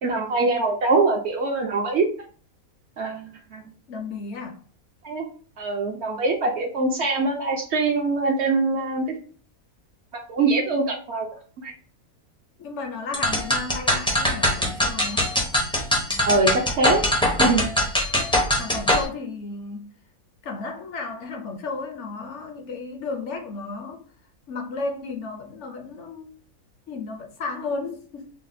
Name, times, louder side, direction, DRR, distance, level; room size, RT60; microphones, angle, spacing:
voice 1, 0.0-2.1 3.0-3.7 5.0-5.3 5.6-9.1 10.3-11.3 11.6-11.7 16.3-17.0 17.4-17.7, right 3 dB, 65° right, 0.7 m, -23 dB
voice 2, 3.9-4.6 12.6-15.3 18.5-19.9 20.4-24.0 24.5-26.3 26.9-28.3, left 3 dB, 65° left, 0.8 m, -33 dB
sound 1, 13.1-19.1, left 1 dB, 10° left, 0.3 m, -22 dB
4.0 x 2.1 x 2.5 m
omnidirectional pair, 1.5 m